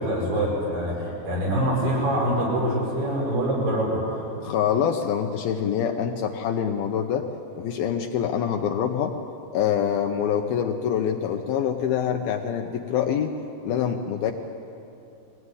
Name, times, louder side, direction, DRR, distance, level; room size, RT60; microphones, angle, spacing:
voice 1, 0.0-4.3, right 1 dB, 70° right, -4 dB, 8.2 m, -25 dB
voice 2, 4.4-7.3 7.6-9.2 9.5-13.3 13.7-14.3, left 8 dB, 75° left, 4 dB, 2.3 m, -25 dB
22.5 x 18.0 x 9.7 m, 2.8 s
omnidirectional pair, 4.9 m